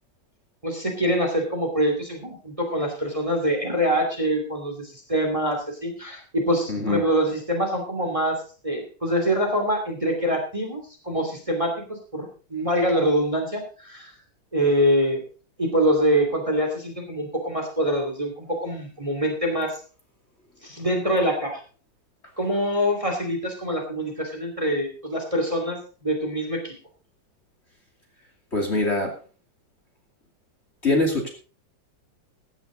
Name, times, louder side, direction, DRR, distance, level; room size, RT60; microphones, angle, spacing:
voice 1, 0.6-14.1 14.5-15.2 15.6-19.8 20.6-21.6 22.4-26.7, equal, 15° right, 3 dB, 2.6 m, -25 dB
voice 2, 6.7-7.0 28.5-29.1 30.8-31.3, left 2 dB, 35° left, 1 dB, 2.7 m, -23 dB
15.5 x 10.5 x 3.9 m, 0.38 s
omnidirectional pair, 2.1 m